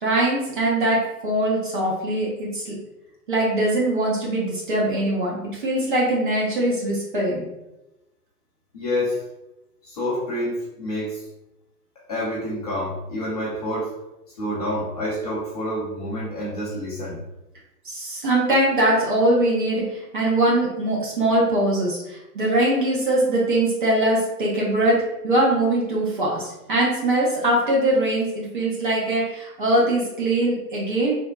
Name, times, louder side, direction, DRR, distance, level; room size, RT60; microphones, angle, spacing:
voice 1, 0.0-2.7 3.3-5.4 5.6-7.5 17.8-31.2, right 1 dB, 35° right, -4 dB, 0.6 m, -22 dB
voice 2, 8.7-9.2 9.8-11.2 12.1-13.9 14.4-17.2, left 1 dB, 25° left, -7 dB, 0.5 m, -28 dB
3.3 x 2.1 x 2.4 m, 0.94 s
figure-of-eight pair, 125°, 48 cm